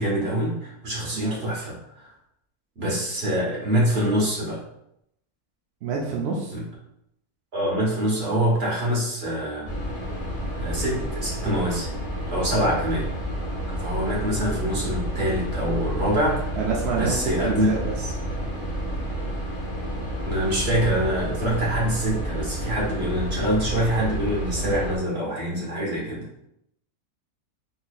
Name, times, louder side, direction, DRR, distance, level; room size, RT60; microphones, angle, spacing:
voice 1, 0.0-1.8 2.0-2.1 2.8-4.6 6.5-6.6 7.5-9.7 10.6-11.9 12.3-13.1 13.8-16.5 16.9-17.7 20.2-26.3, right 1 dB, 45° right, -5 dB, 1.3 m, -25 dB
voice 2, 5.8-6.6 16.5-18.2, right 5 dB, 70° right, -2 dB, 0.6 m, -28 dB
sound 1, 9.6-25.0, equal, 35° left, 0.4 m, -30 dB
4.0 x 2.8 x 2.3 m, 0.78 s
omnidirectional pair, 1.6 m